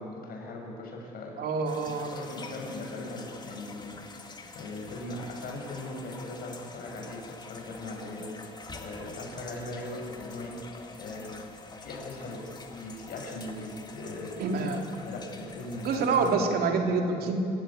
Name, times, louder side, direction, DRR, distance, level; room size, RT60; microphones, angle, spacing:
voice 1, 0.0-1.3 1.9-4.0 4.5-8.3 8.8-10.6 11.0-11.4 11.8-14.3 15.0-16.5, left 2 dB, 60° left, 0 dB, 7.1 m, -39 dB
voice 2, 1.4-2.1 14.4-14.9 15.8-17.4, right 4 dB, 65° right, 3 dB, 3.0 m, -27 dB
sound 1, 1.7-16.4, left 3 dB, 25° left, 2.3 m, -46 dB
27.0 x 16.0 x 9.0 m, 2.6 s
cardioid pair, 110°, 17 cm